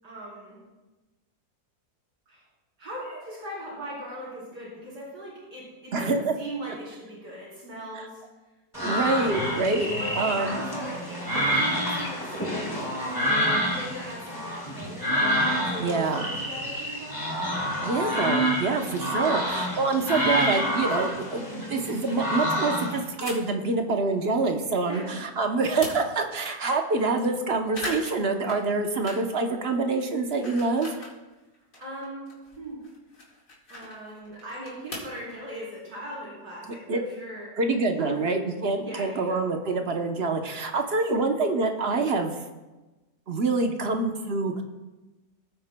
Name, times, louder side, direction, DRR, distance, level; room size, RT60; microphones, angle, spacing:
voice 1, 0.0-0.6 2.3-2.4 2.8-8.2 8.7-9.1 10.0-15.2 15.5-17.6 21.5-21.7 24.9-25.2 31.8-32.8 33.7-37.6 38.0-38.4 38.8-39.4 41.1-41.3, right 1 dB, 80° right, -7 dB, 4.5 m, -39 dB
sound 1, 8.7-23.0, equal, 15° left, 2.0 m, -28 dB
voice 2, 8.8-9.9 10.1-10.6 15.8-16.3 17.8-30.9 36.9-37.0 37.6-42.4 43.3-44.6, right 3 dB, 50° right, 5 dB, 0.9 m, -26 dB
sound 2, 20.0-20.1 20.4-20.5 20.8-21.3 23.2-23.7 24.2-25.2 25.5-26.3 26.7-26.8 27.0-27.4 27.7-29.4 29.7-31.2 31.5-35.2, left 1 dB, 85° left, 3.0 m, -40 dB
19.5 x 9.1 x 2.2 m, 1.1 s
omnidirectional pair, 1.8 m